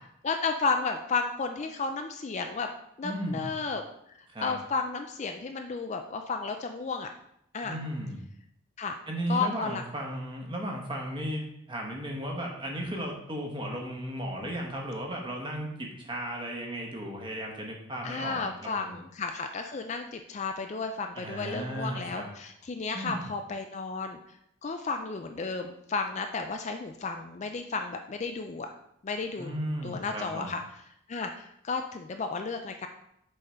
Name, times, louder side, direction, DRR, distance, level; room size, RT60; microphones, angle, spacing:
voice 1, 0.2-2.7 3.0-7.1 7.5-7.8 8.8-9.0 9.3-9.8 18.0-28.7 29.0-29.5 29.8-30.6 31.1-32.9, left 4 dB, 35° left, 5 dB, 0.4 m, -33 dB
voice 2, 3.0-3.5 4.3-4.5 7.6-8.2 9.1-19.0 21.1-22.3 22.9-23.2 29.4-30.5, right 1 dB, 25° right, 0 dB, 1.0 m, -35 dB
6.5 x 3.7 x 4.3 m, 0.75 s
head